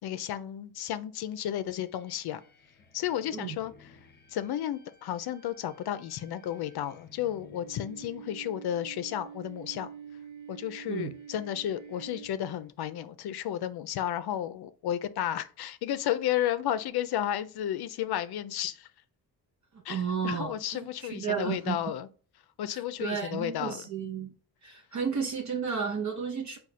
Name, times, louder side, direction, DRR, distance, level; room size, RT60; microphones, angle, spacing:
voice 1, 0.0-2.4 2.9-3.9 4.3-9.9 10.5-18.9 19.8-22.1 22.6-23.8, left 11 dB, 65° left, 0.5 m, -33 dB
sound 1, 1.7-12.8, right 6 dB, 25° left, 0.8 m, -49 dB
voice 2, 19.9-21.8 22.7-24.3 24.6-26.6, right 6 dB, 45° right, 0.6 m, -33 dB
4.8 x 2.3 x 4.2 m
cardioid pair, 125°, 42 cm